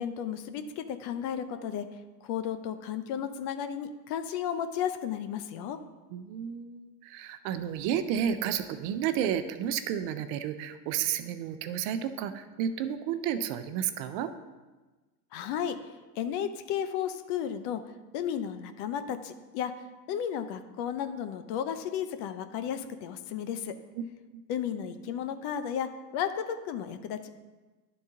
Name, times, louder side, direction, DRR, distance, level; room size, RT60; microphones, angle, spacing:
voice 1, 0.0-1.9 2.2-5.8 15.3-15.7 16.1-17.8 18.1-19.7 20.1-23.7 24.5-27.3, left 9 dB, 55° left, 9 dB, 0.7 m, -33 dB
voice 2, 6.1-14.3 24.0-24.1 24.3-24.4, right 9 dB, 55° right, 10 dB, 0.6 m, -31 dB
10.5 x 3.9 x 3.7 m, 1.2 s
hypercardioid pair, 95°, 49 cm